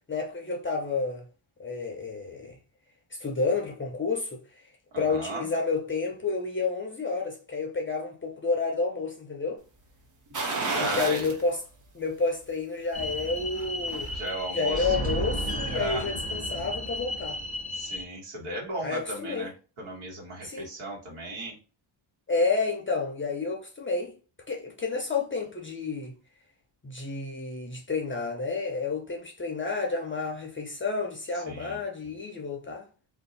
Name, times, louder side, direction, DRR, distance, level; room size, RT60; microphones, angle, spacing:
voice 1, 0.1-1.3 1.6-2.5 3.1-4.4 5.0-9.6 10.8-11.6 11.9-14.1 14.5-17.4 18.8-19.5 20.4-20.7 22.3-24.1 24.5-26.1 26.8-32.9, left 4 dB, 25° left, 0.4 m, -30 dB
voice 2, 4.9-5.5 10.6-11.3 14.1-15.0 15.7-16.1 17.7-19.5 19.8-21.6 31.5-31.8, right 1 dB, 75° right, 1.5 m, -36 dB
sound 1, 10.3-11.4 11.8-11.9 13.4-14.2 14.6-14.7, right 3 dB, 40° right, 0.6 m, -31 dB
sound 2, 12.9-18.0, equal, 15° right, 0.9 m, -33 dB
2.6 x 2.3 x 3.9 m
wide cardioid pair, 175°, 50 cm